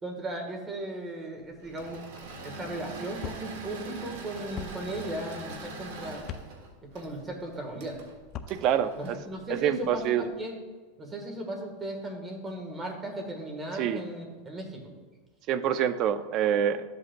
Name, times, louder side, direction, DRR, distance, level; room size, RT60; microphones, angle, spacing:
voice 1, 0.0-2.0 2.4-6.3 6.8-8.0 9.0-10.5 11.0-14.8, right 1 dB, 15° right, 3 dB, 1.4 m, -37 dB
Engine / Mechanisms, 1.6-10.0, right 3 dB, 70° right, 1.7 m, -43 dB
sound 1, 3.2-3.4 4.6-4.7 6.2-6.5 8.2-8.5, left 8 dB, 30° left, 0.4 m, -38 dB
voice 2, 8.5-9.2 9.5-10.3 13.8-14.0 15.5-16.8, right 9 dB, 40° right, 12 dB, 0.4 m, -26 dB
12.5 x 7.9 x 2.2 m, 1.4 s
supercardioid pair, 155°, 0 cm